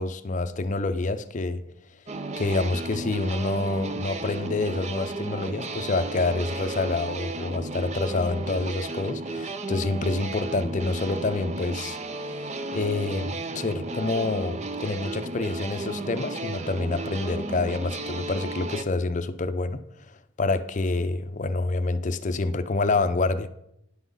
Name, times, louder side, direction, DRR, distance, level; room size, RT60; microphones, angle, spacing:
voice 1, 0.0-1.6 2.4-12.0 12.7-19.8 20.4-23.5, left 3 dB, 40° left, 0.6 m, -27 dB
sound 1, 2.1-18.8, right 2 dB, 35° right, 0.6 m, -34 dB
10.5 x 6.1 x 5.5 m
head